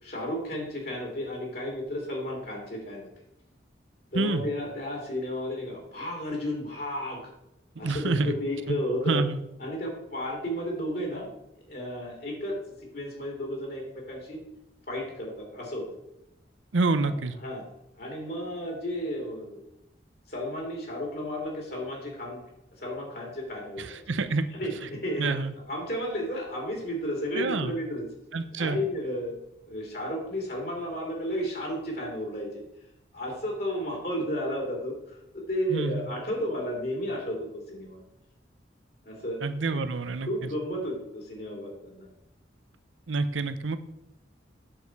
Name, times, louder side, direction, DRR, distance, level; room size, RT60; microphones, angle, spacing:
voice 1, 0.0-3.1 4.1-7.2 7.8-9.2 9.6-11.3 11.7-12.5 12.9-14.4 14.9-15.9 17.0-17.7 17.9-19.6 20.3-22.4 22.8-24.0 24.5-25.3 25.7-28.1 28.6-29.4 29.6-32.6 33.1-38.0 39.0-39.4 39.7-39.8 40.2-42.1 43.3-43.4, equal, 55° left, -1 dB, 2.9 m, -33 dB
voice 2, 7.8-8.3 8.7-8.8 9.0-9.4 16.7-17.3 24.1-24.5 25.2-25.5 27.3-27.7 28.3-28.8 35.7-36.1 39.4-40.3 43.1-43.8, right 3 dB, 90° right, 11 dB, 0.7 m, -27 dB
8.8 x 7.2 x 4.7 m, 0.86 s
head